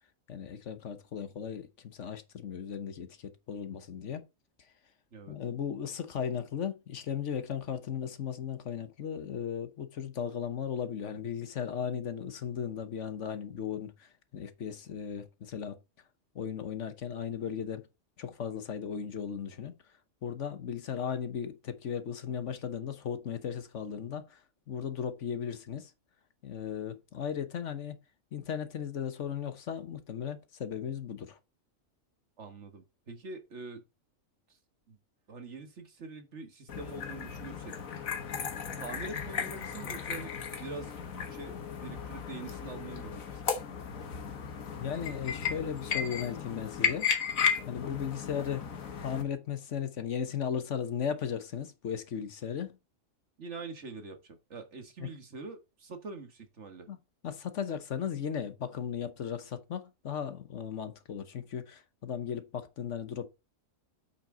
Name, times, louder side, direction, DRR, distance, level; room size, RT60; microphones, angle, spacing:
voice 1, 0.3-4.2 5.3-15.8 16.3-17.9 18.2-19.7 20.2-24.4 24.7-25.9 26.4-28.0 28.3-31.4 44.8-47.1 47.7-48.7 49.0-52.8 55.0-55.1 56.9-57.0 57.2-63.3, left 8 dB, 65° left, 1.3 m, -36 dB
voice 2, 32.4-33.8 34.9-35.0 35.3-37.7 38.8-41.6 41.8-43.5 53.4-56.9, right 4 dB, 60° right, 1.7 m, -44 dB
sound 1, 36.7-49.2, left 7 dB, 90° left, 1.7 m, -35 dB
8.3 x 5.9 x 3.8 m
omnidirectional pair, 1.4 m